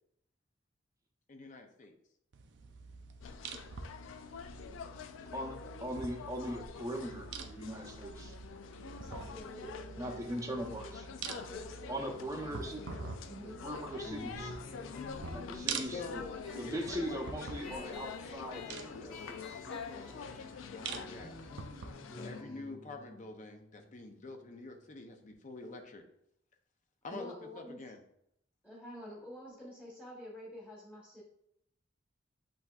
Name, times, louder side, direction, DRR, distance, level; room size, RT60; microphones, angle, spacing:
voice 1, 1.3-1.9 15.8-16.4 16.6-21.5 22.1-26.0 27.0-28.0, left 2 dB, 40° left, 5 dB, 0.6 m, -48 dB
sound 1, 2.3-21.9, right 5 dB, 65° right, 0.5 m, -47 dB
sound 2, 3.2-22.4, left 6 dB, 90° left, 0.3 m, -46 dB
voice 2, 5.3-8.4 10.0-11.1 11.9-12.9 13.4-14.6 15.3-16.2 16.5-19.4, equal, 15° right, 1 dB, 0.7 m, -40 dB
voice 3, 9.0-10.9 11.2-12.1 13.3-13.6 15.5-15.6 22.4-22.6 27.1-27.8 28.6-31.2, equal, 10° left, -6 dB, 1.1 m, -49 dB
sound 3, 14.0-25.2, left 2 dB, 70° left, 1.5 m, -51 dB
7.7 x 2.7 x 2.3 m, 0.76 s
head